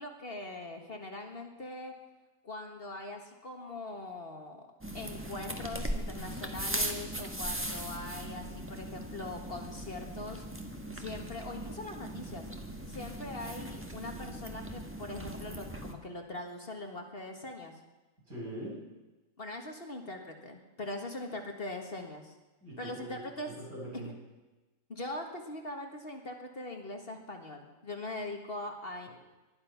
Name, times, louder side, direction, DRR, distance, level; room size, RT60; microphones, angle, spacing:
voice 1, 0.0-1.9 2.4-4.7 4.9-10.4 10.9-12.5 12.9-17.8 19.4-22.3 22.8-23.5 23.9-24.1 24.9-29.1, left 2 dB, 40° left, 3 dB, 1.8 m, -41 dB
sound 1, 4.8-15.9, right 1 dB, 10° right, 1.3 m, -39 dB
voice 2, 18.2-18.8 22.6-23.2 23.5-24.1, right 1 dB, 75° right, -5 dB, 7.6 m, -42 dB
19.5 x 12.0 x 5.8 m, 1.1 s
omnidirectional pair, 1.6 m